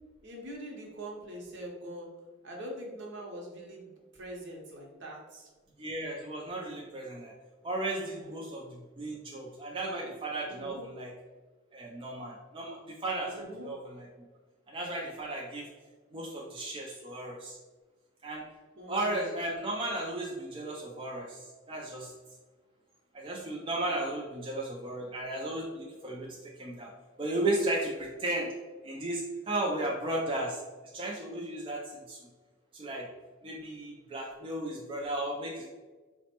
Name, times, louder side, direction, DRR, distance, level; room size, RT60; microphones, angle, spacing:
voice 1, 0.2-2.1 2.4-5.5 8.0-8.3 10.5-10.8 13.3-13.7 18.8-19.2, right 1 dB, 60° right, -1 dB, 0.8 m, -43 dB
voice 2, 5.8-7.3 7.6-11.1 11.7-14.1 14.7-15.7 16.1-17.6 18.2-18.4 18.9-22.1 23.1-26.9 27.2-28.5 28.8-30.6 30.9-32.3 32.7-33.1 33.4-35.7, right 1 dB, 25° right, -3 dB, 0.4 m, -35 dB
4.0 x 2.1 x 2.8 m, 1.3 s
head